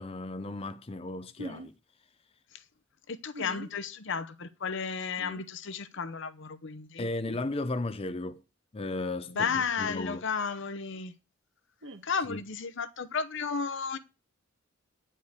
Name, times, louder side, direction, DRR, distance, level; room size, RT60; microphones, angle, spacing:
voice 1, 0.0-1.7 7.0-8.4 8.7-9.5 9.8-10.2 12.3-12.4, left 2 dB, 30° left, 0.5 m, -35 dB
sound 1, 1.4-1.7 3.3-3.7 5.2-5.4 7.2-7.4 9.3-9.7 11.8-12.0, right 1 dB, 65° right, 1.5 m, -43 dB
voice 2, 3.1-7.1 9.3-11.1 12.0-14.0, left 5 dB, 60° left, 0.8 m, -33 dB
9.8 x 5.4 x 8.1 m
head